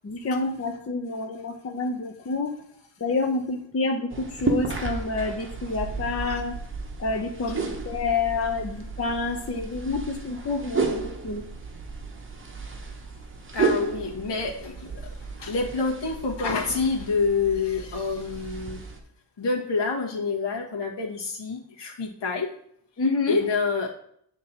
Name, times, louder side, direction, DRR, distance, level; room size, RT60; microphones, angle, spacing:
voice 1, 0.0-2.5 3.0-6.6 7.0-11.4 23.0-23.4, left 3 dB, 35° left, 4 dB, 0.7 m, -28 dB
sound 1, 4.1-19.0, right 4 dB, 30° right, 0.9 m, -33 dB
voice 2, 13.5-18.8 19.4-22.5 23.3-23.9, left 4 dB, 80° left, -2 dB, 1.8 m, -27 dB
8.1 x 3.6 x 4.3 m, 0.67 s
wide cardioid pair, 165°, 42 cm